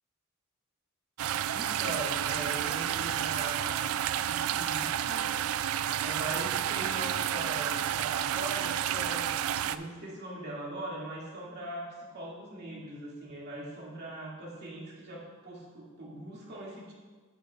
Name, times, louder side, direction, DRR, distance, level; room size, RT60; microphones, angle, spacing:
sound 1, 1.2-9.8, right 10 dB, 85° right, 0.3 m, -30 dB
voice 1, 1.5-3.9 4.3-5.3 6.0-9.3 9.7-16.9, right 1 dB, 50° right, -5 dB, 2.3 m, -40 dB
10.5 x 8.4 x 2.4 m, 1.4 s
head